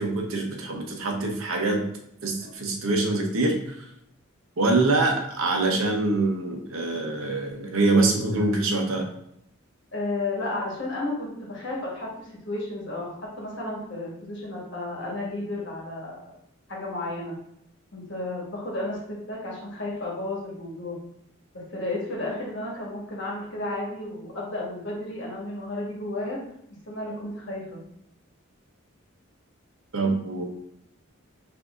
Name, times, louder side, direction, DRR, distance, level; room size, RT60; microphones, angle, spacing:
voice 1, 0.0-1.9 2.2-3.9 4.6-9.1 29.9-30.4, right 2 dB, 80° right, 2 dB, 0.8 m, -24 dB
voice 2, 9.9-13.1 13.4-16.2 16.7-17.3 17.9-21.0 21.5-26.4 26.9-27.8, left 2 dB, 55° left, -3 dB, 1.3 m, -32 dB
6.0 x 2.7 x 2.5 m, 0.76 s
head